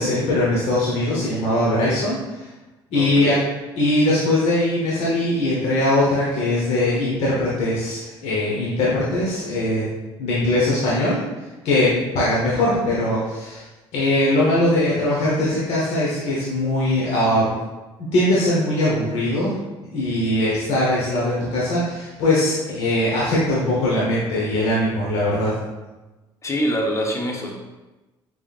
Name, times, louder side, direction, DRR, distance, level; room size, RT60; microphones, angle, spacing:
voice 1, 0.0-2.2 2.9-3.3 3.8-9.9 10.2-11.2 11.6-13.6 13.9-17.6 18.0-19.5 19.9-25.5, left 1 dB, 70° left, -7 dB, 1.2 m, -21 dB
voice 2, 2.9-3.4 26.4-27.5, equal, 25° left, 0 dB, 1.0 m, -24 dB
5.3 x 3.6 x 2.5 m, 1.1 s
supercardioid pair, 75°, 11 cm